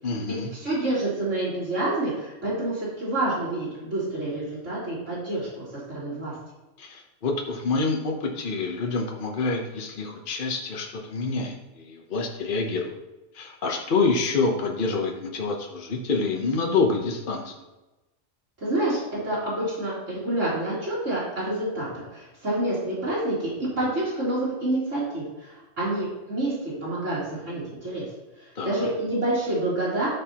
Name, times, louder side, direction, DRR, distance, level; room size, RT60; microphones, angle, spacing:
voice 1, 0.0-0.5 6.8-13.0 13.3-17.6 28.6-28.9, left 4 dB, 45° left, 1 dB, 1.1 m, -27 dB
voice 2, 0.6-6.3 18.6-28.1 28.4-30.1, right 1 dB, 70° right, -12 dB, 3.8 m, -28 dB
13.5 x 5.3 x 2.9 m, 1.1 s
omnidirectional pair, 1.3 m